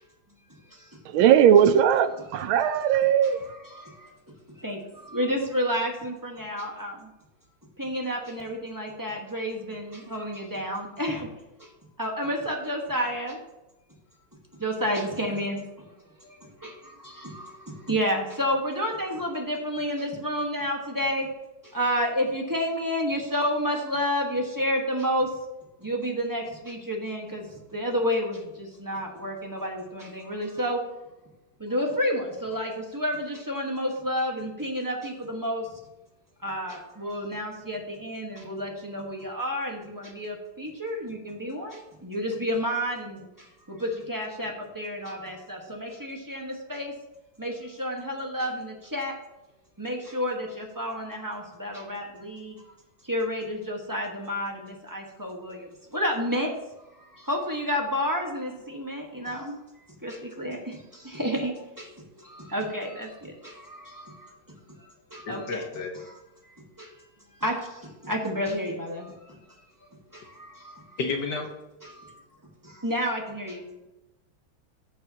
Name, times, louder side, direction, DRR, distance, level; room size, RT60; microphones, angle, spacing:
voice 1, 1.0-3.4, right 9 dB, 80° right, 1.4 m, -19 dB
voice 2, 5.1-6.9 7.8-11.3 12.0-13.3 14.6-15.6 17.3-17.4 17.9-21.3 21.7-25.3 25.8-27.4 27.7-28.4 28.8-30.8 31.6-35.6 36.4-43.2 43.8-46.9 47.4-47.5 47.8-49.1 49.8-52.5 53.1-54.5 54.9-55.6 55.9-56.5 57.3-59.6 60.0-60.6 61.1-61.5 62.5-63.1 65.3-65.6 67.4-67.5 68.1-69.0 72.8-73.6, equal, 10° right, 1.2 m, -29 dB
voice 3, 65.3-66.0 71.0-71.5, left 4 dB, 60° left, 1.7 m, -31 dB
16.0 x 6.7 x 2.9 m
omnidirectional pair, 2.2 m